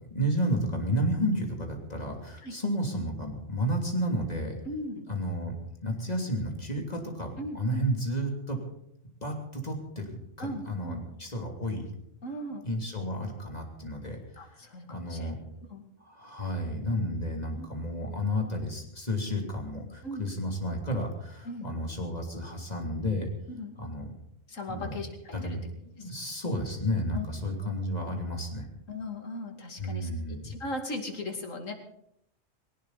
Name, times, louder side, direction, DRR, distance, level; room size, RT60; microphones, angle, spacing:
voice 1, 0.1-4.6 5.1-5.5 5.8-8.6 9.2-11.9 12.6-14.5 14.9-15.4 16.0-23.3 23.7-24.1 24.7-25.0 25.3-28.7 29.8-30.5, equal, 30° left, 2 dB, 3.2 m, -32 dB
voice 2, 4.7-5.1 7.4-7.9 10.4-11.0 12.2-12.6 14.4-15.3 15.7-15.8 17.6-17.7 20.0-20.2 21.4-21.7 23.5-23.7 24.5-25.6 27.1-27.3 28.9-30.1 30.4-31.7, left 1 dB, 90° left, 4 dB, 2.8 m, -38 dB
19.5 x 18.0 x 4.1 m, 0.75 s
omnidirectional pair, 1.3 m